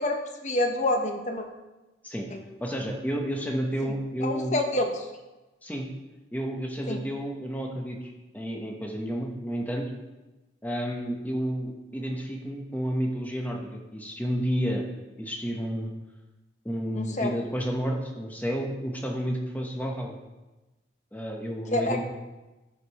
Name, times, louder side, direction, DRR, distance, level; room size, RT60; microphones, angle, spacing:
voice 1, 0.0-1.4 2.3-2.4 4.2-5.1 6.9-7.0 17.0-17.3 21.7-22.0, left 1 dB, 40° left, 4 dB, 0.9 m, -27 dB
voice 2, 2.6-4.5 5.6-5.9 6.3-9.9 10.6-14.8 15.2-15.9 16.6-20.2 21.1-22.0, equal, 10° left, 1 dB, 1.1 m, -31 dB
12.5 x 5.2 x 4.2 m, 1.1 s
head